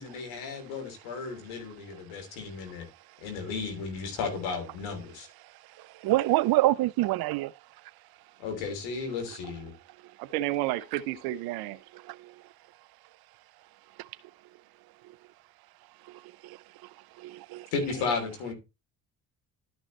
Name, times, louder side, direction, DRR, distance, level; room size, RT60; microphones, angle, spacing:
voice 1, 0.0-2.9 3.2-5.3 8.4-9.7 17.7-18.5, left 4 dB, 80° left, 3.3 m, -34 dB
voice 2, 6.0-7.5 10.9-11.0 12.1-12.2 16.4-16.6 17.2-17.7, right 17 dB, 55° right, 0.5 m, -25 dB
voice 3, 10.2-11.8, right 15 dB, 85° right, 1.0 m, -31 dB
12.0 x 6.2 x 3.1 m
hypercardioid pair, 55°, 45 cm